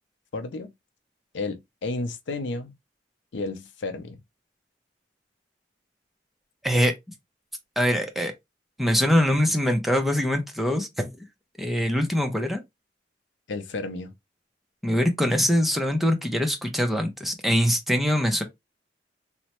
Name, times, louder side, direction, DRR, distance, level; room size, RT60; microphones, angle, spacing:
voice 1, 0.3-0.7 1.3-2.7 3.3-4.2 13.5-14.1, left 3 dB, 80° left, 0.5 m, -32 dB
voice 2, 7.8-8.3 8.8-11.1 11.6-12.6 14.8-18.4, equal, ahead, 0.5 m, -23 dB
3.0 x 2.1 x 2.9 m
head